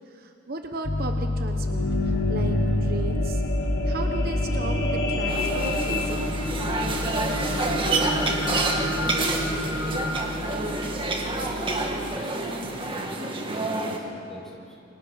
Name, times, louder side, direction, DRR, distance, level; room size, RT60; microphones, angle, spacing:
voice 1, 0.1-3.4 3.8-6.3, right 2 dB, 50° right, 5 dB, 1.1 m, -36 dB
Piano, 0.8-12.2, left 2 dB, 35° left, 0.6 m, -32 dB
sound 1, 1.3-11.8 12.4-12.5, left 1 dB, 70° left, 5.1 m, -28 dB
sound 2, 5.3-14.0, right 2 dB, 25° right, 2.0 m, -28 dB
voice 2, 8.7-11.6 12.1-14.8, right 1 dB, ahead, -3 dB, 5.1 m, -42 dB
29.0 x 24.5 x 5.7 m, 2.8 s
head